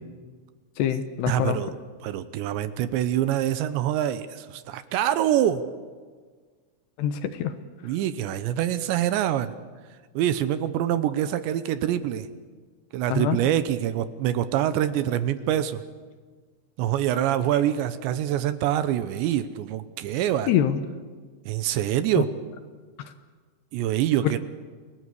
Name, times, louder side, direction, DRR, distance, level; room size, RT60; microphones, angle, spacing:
voice 1, 0.8-1.6 7.0-7.5 13.1-13.4 20.5-20.8 22.2-22.3 23.0-23.1, left 10 dB, 75° left, 9 dB, 2.9 m, -25 dB
voice 2, 1.3-1.7 2.0-5.6 7.8-9.5 10.1-12.3 12.9-15.8 16.8-20.5 21.5-22.3 23.7-24.4, right 11 dB, 75° right, 12 dB, 3.0 m, -25 dB
29.0 x 18.5 x 8.3 m, 1.5 s
omnidirectional pair, 5.5 m